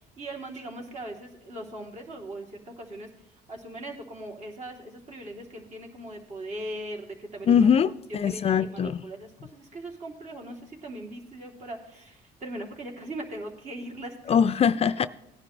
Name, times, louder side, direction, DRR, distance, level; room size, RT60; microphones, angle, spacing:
voice 1, 0.2-2.5 2.8-3.1 3.5-7.7 8.2-14.5, right 1 dB, 45° right, 0 dB, 3.2 m, -39 dB
voice 2, 7.5-9.0 14.3-15.1, left 7 dB, 40° left, 14 dB, 0.4 m, -22 dB
17.5 x 10.5 x 3.3 m, 0.79 s
cardioid pair, 110°, 17 cm